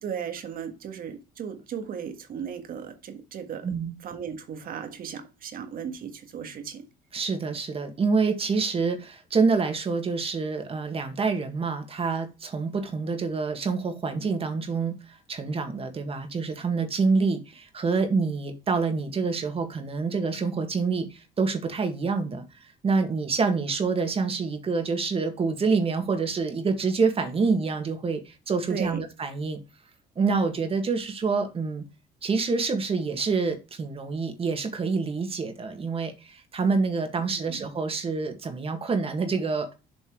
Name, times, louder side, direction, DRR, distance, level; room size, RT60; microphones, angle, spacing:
voice 1, 0.0-3.7 4.0-6.8 28.7-29.0 37.4-37.7, right 7 dB, 55° right, 1.7 m, -36 dB
voice 2, 3.6-4.0 7.1-22.4 22.8-29.6 30.2-31.8 32.2-39.7, right 4 dB, 35° right, 1.8 m, -27 dB
7.5 x 4.5 x 4.5 m
cardioid pair, 110°, 17 cm